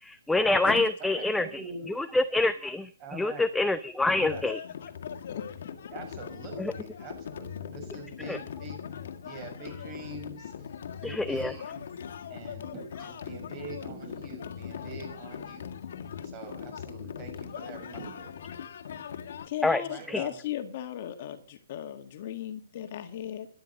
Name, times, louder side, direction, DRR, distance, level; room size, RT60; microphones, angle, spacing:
voice 1, 0.0-1.5 2.0-2.9 3.2-4.6 6.6-6.7 8.3-8.4 11.0-11.5 19.6-19.8 20.1-20.2, left 2 dB, 5° left, 11 dB, 0.6 m, -26 dB
voice 2, 1.0-1.9 3.0-3.4 4.1-4.4 5.9-8.8 9.2-10.7 11.0-11.8 12.3-15.7 16.2-18.4 19.8-20.4, right 3 dB, 25° right, 5 dB, 6.3 m, -44 dB
sound 1, 4.2-19.5, left 8 dB, 60° left, 1.8 m, -40 dB
voice 3, 19.4-23.5, left 11 dB, 45° left, 8 dB, 1.7 m, -36 dB
13.0 x 12.0 x 6.5 m, 0.43 s
hypercardioid pair, 155°, 0 cm